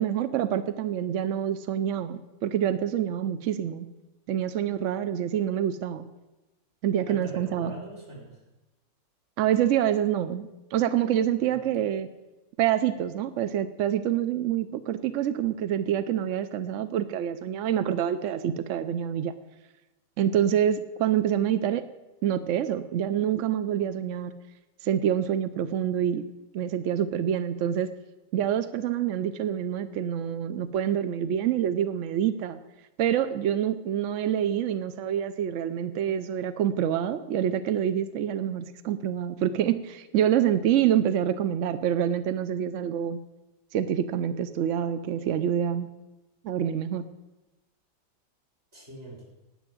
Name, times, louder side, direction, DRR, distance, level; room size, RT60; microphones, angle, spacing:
voice 1, 0.0-3.9 4.3-6.1 6.8-7.7 9.4-12.1 12.6-19.3 20.2-21.9 22.2-24.3 24.8-26.2 26.5-27.9 28.3-32.6 33.0-43.2 43.7-45.9 46.4-47.1, right 10 dB, 75° right, 12 dB, 0.7 m, -26 dB
voice 2, 7.1-8.4 11.5-11.8 48.7-49.2, right 1 dB, 35° right, -1 dB, 3.5 m, -42 dB
10.0 x 8.2 x 7.6 m, 1.1 s
omnidirectional pair, 1.9 m